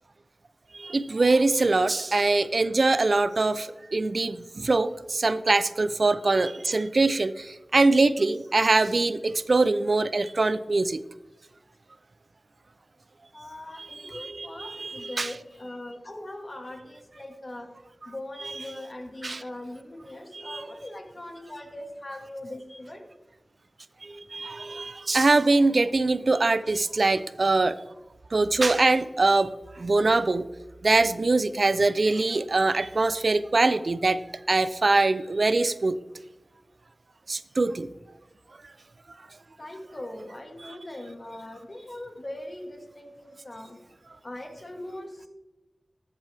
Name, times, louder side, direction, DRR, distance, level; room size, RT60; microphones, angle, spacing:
voice 1, 0.7-11.0 13.8-15.3 18.4-18.5 19.2-19.4 20.3-20.6 24.0-27.7 28.3-30.5 30.8-34.2 34.5-36.0 37.3-37.9, right 3 dB, 60° right, 14 dB, 0.4 m, -23 dB
voice 2, 13.3-17.7 18.0-23.0 26.3-27.1 39.6-43.8 44.2-45.3, left 1 dB, 45° left, 4 dB, 1.8 m, -41 dB
13.5 x 7.4 x 3.4 m, 1.0 s
wide cardioid pair, 55°, 0 cm